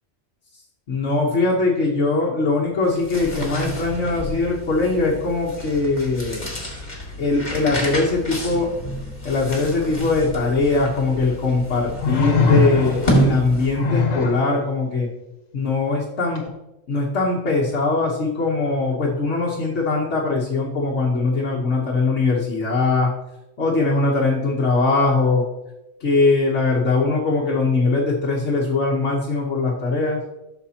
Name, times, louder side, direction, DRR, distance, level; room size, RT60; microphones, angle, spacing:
voice 1, 0.9-6.5 7.2-8.7 9.2-15.1 15.5-16.4 16.9-23.1 23.6-25.5 26.0-30.2, left 3 dB, 60° left, -4 dB, 1.4 m, -21 dB
sound 1, 2.8-14.0, right 1 dB, 35° left, 2.1 m, -28 dB
sound 2, 10.6-10.7 12.0-13.2 13.7-14.4 16.3-16.5, left 5 dB, 80° left, 1.6 m, -20 dB
12.5 x 6.6 x 2.9 m, 0.94 s
omnidirectional pair, 1.3 m